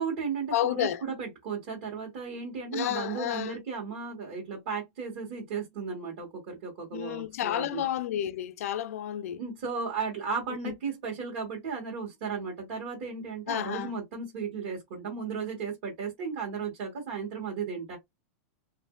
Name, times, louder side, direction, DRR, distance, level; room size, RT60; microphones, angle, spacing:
voice 1, 0.0-7.8 9.4-18.0, right 5 dB, 60° right, 1.2 m, -35 dB
voice 2, 0.5-1.0 2.7-3.6 6.9-9.4 10.6-10.7 13.5-13.9, left 12 dB, 85° left, 0.4 m, -31 dB
2.7 x 2.5 x 2.2 m
supercardioid pair, 160°, 8 cm